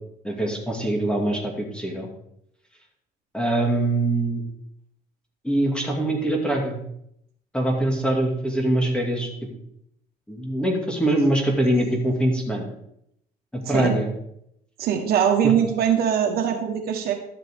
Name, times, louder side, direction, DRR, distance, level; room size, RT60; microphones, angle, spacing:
voice 1, 0.2-2.1 3.3-4.4 5.4-6.8 7.5-9.3 10.3-12.7 13.5-14.1 15.4-15.5, right 1 dB, 5° left, 0 dB, 2.3 m, -23 dB
voice 2, 14.8-17.1, right 8 dB, 65° right, 3 dB, 1.5 m, -22 dB
12.5 x 7.5 x 3.7 m, 0.76 s
cardioid pair, 110°, 17 cm